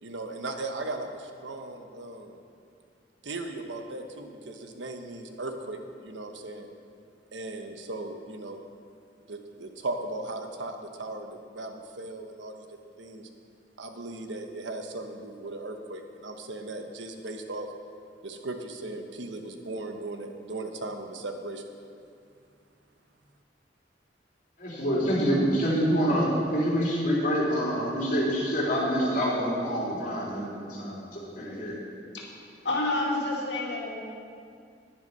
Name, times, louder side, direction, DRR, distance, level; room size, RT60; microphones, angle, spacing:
voice 1, 0.0-2.4 3.2-6.7 7.3-8.6 9.3-13.3 13.8-17.7 18.2-21.7, right 2 dB, 90° right, 5 dB, 1.1 m, -37 dB
voice 2, 24.6-31.8, equal, 50° left, -5 dB, 3.4 m, -26 dB
voice 3, 32.6-34.0, left 2 dB, 70° left, -3 dB, 2.4 m, -29 dB
11.0 x 10.5 x 5.5 m, 2.3 s
head